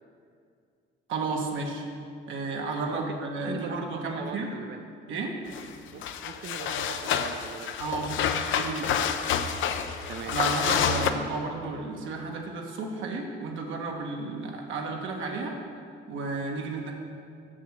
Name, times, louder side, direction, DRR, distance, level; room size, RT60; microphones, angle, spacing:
voice 1, 1.1-1.8 2.3-4.5 5.1-5.3 7.8-8.9 10.3-15.6 16.1-16.9, right 3 dB, 80° right, 1 dB, 1.2 m, -32 dB
voice 2, 3.4-4.8 5.9-7.8 9.5-9.8 10.1-10.4, right 7 dB, 60° right, 5 dB, 0.5 m, -40 dB
sound 1, 5.5-5.7 6.0-11.1, left 8 dB, 75° left, 0.5 m, -28 dB
6.5 x 6.3 x 6.2 m, 2.3 s
cardioid pair, 90°, 20 cm